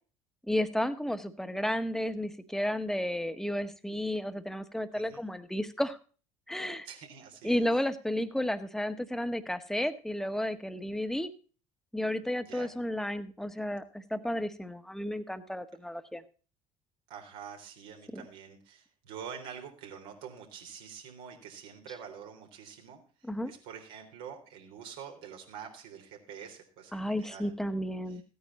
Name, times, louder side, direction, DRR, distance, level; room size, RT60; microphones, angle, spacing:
voice 1, 0.5-6.0 6.5-6.9 7.4-11.3 11.9-16.2 18.1-18.2 23.2-23.5 26.9-28.2, left 1 dB, ahead, 10 dB, 1.4 m, -32 dB
voice 2, 4.9-5.3 6.8-7.7 12.4-12.7 17.1-27.5 28.1-28.2, right 7 dB, 70° right, 2 dB, 3.6 m, -46 dB
15.5 x 9.4 x 4.2 m, 0.38 s
hypercardioid pair, 60°, 19 cm